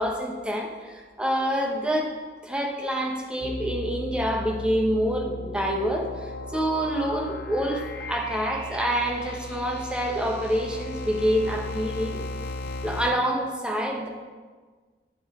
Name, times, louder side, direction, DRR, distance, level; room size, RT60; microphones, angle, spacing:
voice 1, 0.0-2.1 2.4-12.2 12.8-14.1, equal, 5° right, 0 dB, 1.0 m, -27 dB
sound 1, 3.4-13.1, left 2 dB, 70° left, 0.7 m, -36 dB
11.0 x 7.8 x 3.7 m, 1.5 s
head